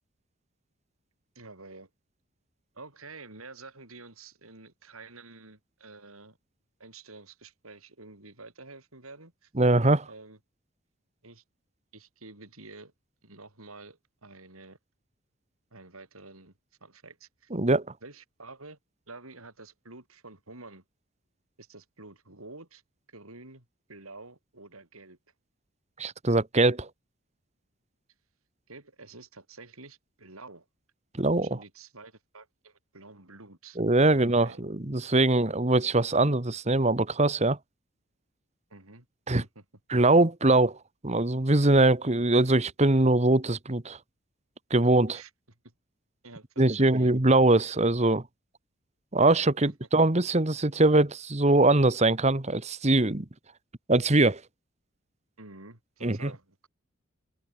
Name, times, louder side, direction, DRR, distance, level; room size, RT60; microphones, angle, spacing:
voice 1, 1.3-1.9 2.7-6.4 6.8-9.5 10.1-10.4 11.2-11.4 11.9-12.9 13.2-14.8 15.7-16.5 16.8-17.5 18.0-18.8 19.1-20.8 21.6-22.8 23.1-25.2 28.7-30.7 31.4-33.8 34.1-34.6 38.7-39.1 39.4-39.6 45.1-45.3 45.6-45.7 46.2-47.1 49.6-49.7 55.4-56.7, right 3 dB, 90° right, 5.9 m, -49 dB
voice 2, 9.6-10.1 17.5-17.8 26.0-26.9 31.2-31.6 33.8-37.6 39.3-39.4 39.9-40.8 41.0-44.0 44.7-45.2 46.6-48.2 49.1-53.2 53.9-54.4 56.0-56.3, right 2 dB, 30° right, 1.4 m, -22 dB
open air
head